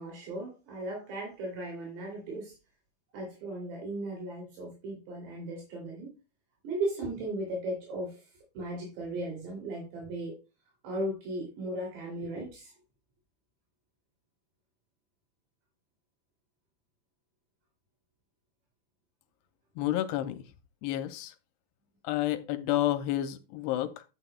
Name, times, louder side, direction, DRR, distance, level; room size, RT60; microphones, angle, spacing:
voice 1, 0.0-2.6 3.1-6.1 6.6-8.2 8.5-10.4 10.8-12.7, right 1 dB, 75° right, 5.1 m, -36 dB
voice 2, 19.8-20.4 20.8-21.3 22.0-24.0, left 13 dB, 80° left, 2.6 m, -30 dB
11.0 x 9.3 x 2.3 m
omnidirectional pair, 4.9 m